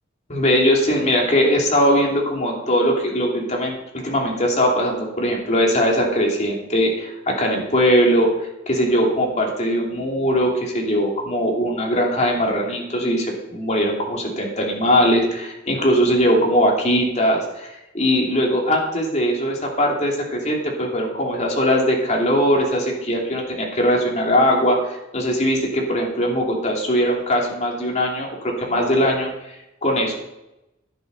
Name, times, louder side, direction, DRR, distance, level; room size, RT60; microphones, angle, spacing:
voice 1, 0.3-8.3 8.7-30.2, equal, 40° left, -1 dB, 2.9 m, -20 dB
10.5 x 10.0 x 5.3 m, 0.90 s
head